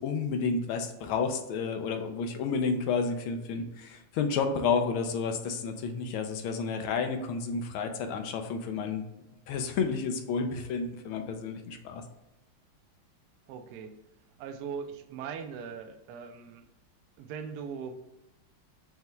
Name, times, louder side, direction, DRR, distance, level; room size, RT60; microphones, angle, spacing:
voice 1, 0.0-9.0 9.5-12.0, left 5 dB, 80° left, 6 dB, 1.4 m, -31 dB
voice 2, 13.5-14.0 14.4-16.7 17.2-18.0, right 6 dB, 90° right, 6 dB, 0.8 m, -40 dB
5.5 x 2.2 x 3.1 m, 0.95 s
omnidirectional pair, 2.3 m